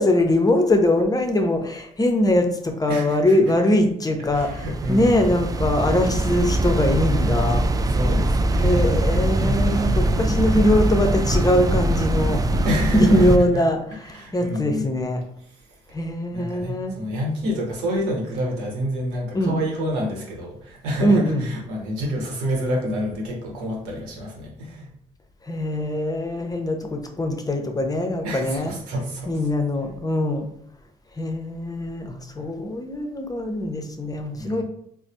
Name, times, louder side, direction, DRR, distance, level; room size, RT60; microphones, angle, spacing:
voice 1, 0.0-7.6 8.5-12.4 12.9-15.2 15.9-16.9 19.3-19.5 21.0-21.4 25.4-28.7 29.3-30.5 31.2-34.6, left 1 dB, 20° left, 4 dB, 0.6 m, -22 dB
voice 2, 2.9-3.4 4.3-5.3 7.9-8.9 9.4-10.4 12.6-13.4 13.9-14.9 15.5-15.8 16.3-24.9 28.2-29.5 32.4-32.5 34.3-34.6, equal, 85° right, -1 dB, 0.8 m, -28 dB
sound 1, 4.2-13.4, right 1 dB, 20° right, 0.3 m, -22 dB
4.1 x 2.1 x 2.6 m, 0.71 s
hypercardioid pair, 45°, 19 cm